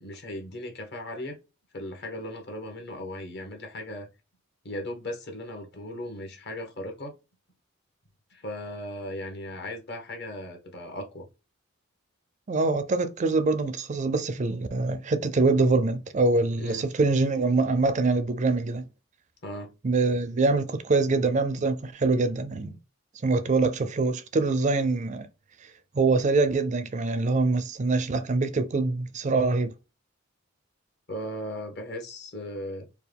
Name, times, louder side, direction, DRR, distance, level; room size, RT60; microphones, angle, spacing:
voice 1, 0.0-1.4 1.7-4.1 4.6-7.1 8.3-11.2 16.6-16.8 19.4-19.7 31.1-32.9, left 1 dB, 55° left, 1.2 m, -37 dB
voice 2, 12.5-18.9 19.8-22.7 23.2-25.3 25.9-29.7, right 3 dB, 35° right, 0.4 m, -24 dB
4.5 x 2.3 x 3.4 m
head